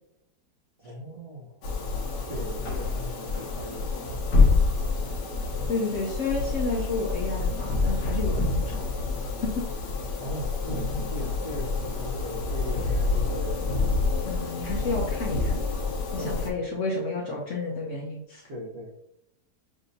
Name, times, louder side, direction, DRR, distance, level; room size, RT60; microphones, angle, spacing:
voice 1, 0.8-1.6 2.3-4.5 10.2-13.7 16.2-16.6 17.1-17.2 18.5-18.9, equal, 60° right, -1 dB, 1.4 m, -39 dB
sound 1, 1.6-16.5, left 3 dB, 80° left, 1.4 m, -27 dB
voice 2, 5.7-8.9 9.4-9.6 14.2-15.6 16.1-18.4, left 3 dB, 55° left, -2 dB, 0.9 m, -31 dB
6.3 x 2.7 x 2.7 m, 0.80 s
omnidirectional pair, 1.8 m